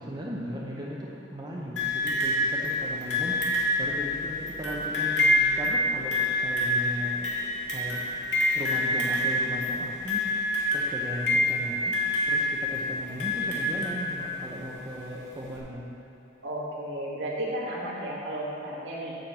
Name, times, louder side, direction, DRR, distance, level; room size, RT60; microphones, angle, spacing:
voice 1, 0.0-7.3 7.7-8.2 8.5-12.0 12.2-15.9, equal, 25° right, -4 dB, 0.7 m, -37 dB
sound 1, 1.8-14.6 15.6-15.7, left 1 dB, 75° left, 1.9 m, -27 dB
voice 2, 16.4-19.2, right 1 dB, 80° right, -8 dB, 2.0 m, -33 dB
8.9 x 5.2 x 7.2 m, 2.7 s
head